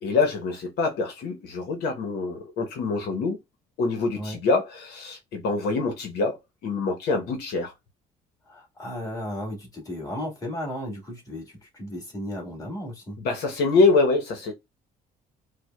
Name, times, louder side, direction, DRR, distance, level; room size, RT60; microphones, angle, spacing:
voice 1, 0.0-3.4 3.8-6.4 6.6-7.7 13.2-14.5, left 3 dB, 75° left, 1.0 m, -25 dB
voice 2, 8.5-13.2, left 1 dB, 20° left, 1.9 m, -35 dB
4.8 x 2.2 x 2.3 m
cardioid pair, 110°, 17 cm